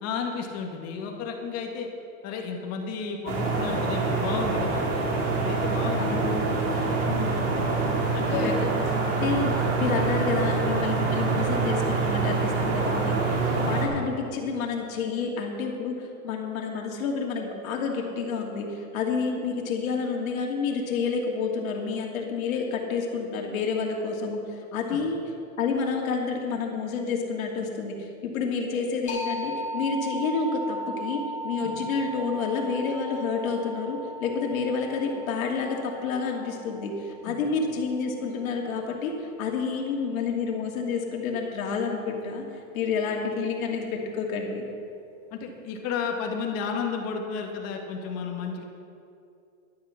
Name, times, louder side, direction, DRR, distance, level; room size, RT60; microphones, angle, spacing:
voice 1, 0.0-1.9 2.2-4.9 5.4-6.2 8.1-8.6 24.9-25.0 31.6-31.7 37.2-37.5 45.3-48.6, left 5 dB, 35° left, 2 dB, 1.9 m, -32 dB
sound 1, 3.3-13.9, right 3 dB, 60° right, 3.4 m, -25 dB
voice 2, 6.0-6.6 7.1-7.4 8.3-8.7 9.2-24.4 24.7-25.2 25.6-42.4 42.7-44.6, left 5 dB, 75° left, 0 dB, 2.8 m, -29 dB
sound 2, 29.1-38.5, right 1 dB, 15° left, 3.3 m, -37 dB
13.5 x 11.0 x 5.9 m, 2.5 s
supercardioid pair, 140°, 42 cm